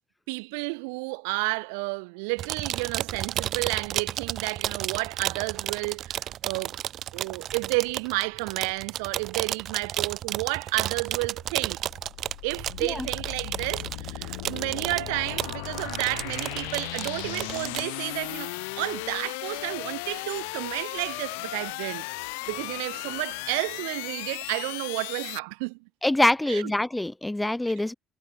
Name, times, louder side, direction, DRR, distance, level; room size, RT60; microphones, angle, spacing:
voice 1, 0.3-6.8 7.1-11.8 12.4-22.1 22.5-25.8 26.5-26.7, right 33 dB, 90° right, 1.7 m, -31 dB
sound 1, 2.4-17.9, right 11 dB, 60° right, 1.6 m, -32 dB
sound 2, 11.4-25.4, left 31 dB, 90° left, 2.7 m, -36 dB
voice 2, 26.0-27.9, left 1 dB, 10° left, 0.3 m, -25 dB
supercardioid pair, 80°, 0 cm